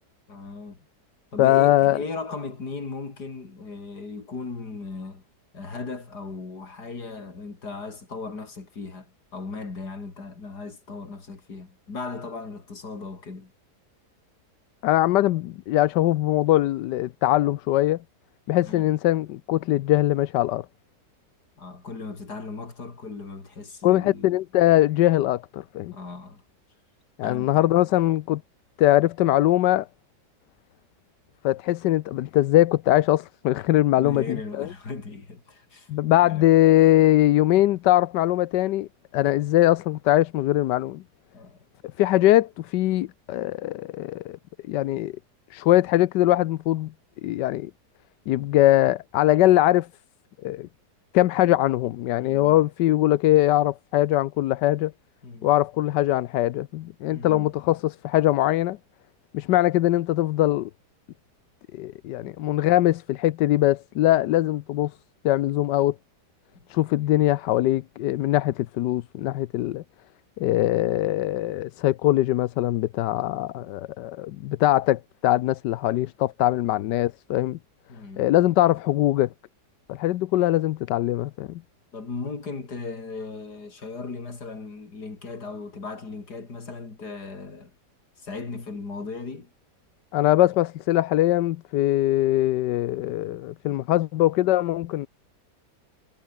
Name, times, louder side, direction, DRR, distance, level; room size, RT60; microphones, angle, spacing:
voice 1, 0.3-0.8 1.3-5.2 5.5-13.5 18.6-18.9 21.6-24.3 25.9-26.4 27.2-27.6 33.9-35.9 36.2-36.5 41.3-41.7 52.2-52.6 55.2-55.5 57.1-57.5 62.2-62.3 66.5-66.7 73.5-73.7 77.9-78.2 81.9-87.7 88.2-89.5, left 4 dB, 70° left, 4.1 m, -37 dB
voice 2, 1.4-2.0 14.8-18.0 18.5-20.7 23.8-25.9 27.2-28.4 28.8-29.9 31.4-34.7 35.9-41.0 42.0-44.4 44.7-45.1 45.5-46.9 47.2-47.7 48.3-49.9 50.4-50.7 51.1-54.9 55.4-58.8 59.3-60.7 61.7-64.9 65.2-66.0 66.7-69.8 70.4-77.6 78.2-79.3 79.9-81.6 90.1-95.1, left 15 dB, 90° left, 1.3 m, -21 dB
omnidirectional pair, 1.8 m